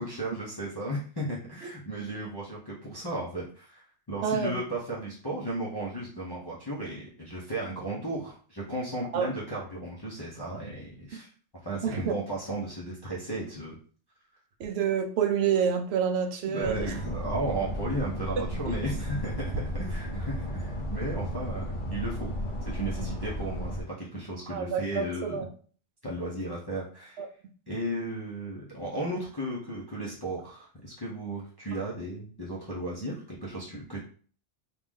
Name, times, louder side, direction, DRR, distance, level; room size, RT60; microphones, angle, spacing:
voice 1, 0.0-11.3 11.6-13.8 16.4-22.3 22.6-25.5 26.0-27.2 27.7-34.0, right 1 dB, 25° left, -7 dB, 0.6 m, -35 dB
voice 2, 4.2-4.5 9.1-9.3 11.8-12.1 14.6-16.9 23.0-23.1 24.5-25.5 27.2-27.3, right 7 dB, 70° right, 5 dB, 0.8 m, -28 dB
sound 1, 16.6-23.8, equal, 45° left, 1.0 m, -34 dB
3.1 x 2.5 x 3.6 m, 0.43 s
omnidirectional pair, 1.2 m